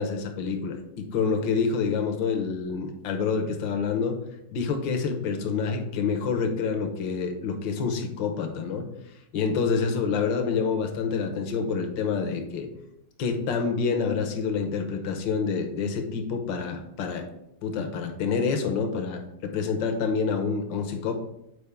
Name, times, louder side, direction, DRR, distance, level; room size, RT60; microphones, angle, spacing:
voice 1, 0.0-4.2 4.5-8.8 9.3-12.7 13.2-17.2 17.6-21.1, left 5 dB, 85° left, 4 dB, 1.5 m, -27 dB
8.1 x 4.7 x 3.5 m, 0.82 s
omnidirectional pair, 2.0 m